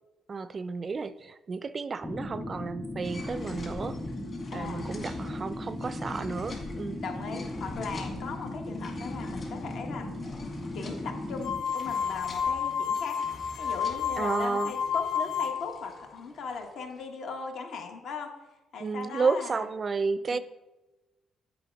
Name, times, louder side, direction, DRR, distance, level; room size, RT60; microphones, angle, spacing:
voice 1, 0.3-4.0 4.5-7.0 14.2-14.7 18.8-20.4, right 4 dB, 40° right, 0.3 m, -32 dB
sound 1, 2.0-11.6, left 1 dB, 10° left, 0.6 m, -37 dB
sound 2, 3.0-17.0, left 2 dB, 40° left, 2.1 m, -46 dB
voice 2, 4.5-4.8 7.0-10.1 10.7-13.2 13.6-18.4 18.7-19.7 20.3-20.4, left 5 dB, 70° left, 1.1 m, -38 dB
sound 3, 11.4-15.8, left 7 dB, 90° left, 0.4 m, -30 dB
7.6 x 3.5 x 5.1 m
cardioid pair, 90°, 0 cm